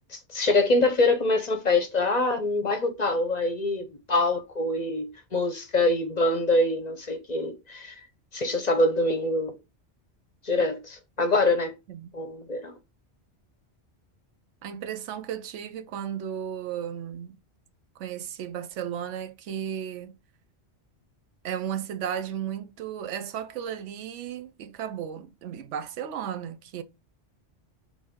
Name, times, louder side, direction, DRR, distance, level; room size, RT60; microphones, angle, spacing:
voice 1, 0.0-8.0 8.3-9.5 10.4-11.7 12.1-12.7, left 2 dB, 45° left, 0.7 m, -25 dB
voice 2, 14.6-17.4 18.0-20.2 21.4-26.8, right 9 dB, 90° right, 1.0 m, -34 dB
4.1 x 3.2 x 3.6 m
omnidirectional pair, 1.2 m